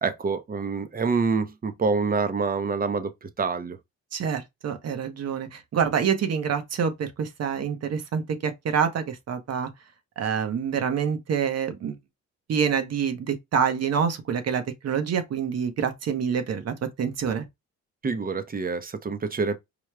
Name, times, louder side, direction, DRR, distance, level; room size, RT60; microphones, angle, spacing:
voice 1, 0.0-3.8 18.0-19.6, right 4 dB, 30° right, 0.8 m, -26 dB
voice 2, 4.1-9.7 10.2-12.0 12.5-17.5, right 7 dB, 55° right, 1.0 m, -27 dB
5.0 x 2.3 x 3.3 m
cardioid pair, 90°, 30 cm